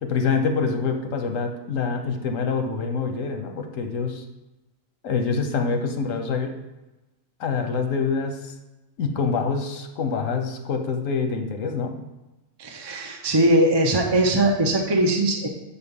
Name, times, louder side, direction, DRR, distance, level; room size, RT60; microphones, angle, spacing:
voice 1, 0.0-4.2 5.0-6.5 7.4-8.5 9.0-11.9, left 5 dB, 85° left, 5 dB, 1.3 m, -26 dB
voice 2, 12.6-15.5, right 1 dB, 25° right, 2 dB, 0.5 m, -20 dB
7.1 x 4.4 x 5.4 m, 1.0 s
omnidirectional pair, 1.3 m